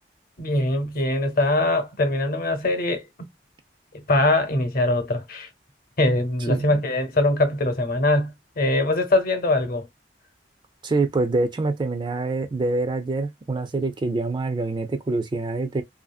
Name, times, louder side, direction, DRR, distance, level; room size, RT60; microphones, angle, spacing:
voice 1, 0.4-3.3 3.9-5.5 6.0-9.9, left 2 dB, 50° left, 0.8 m, -22 dB
voice 2, 6.5-6.8 10.8-15.8, right 3 dB, 25° right, 0.4 m, -25 dB
2.7 x 2.6 x 2.3 m
head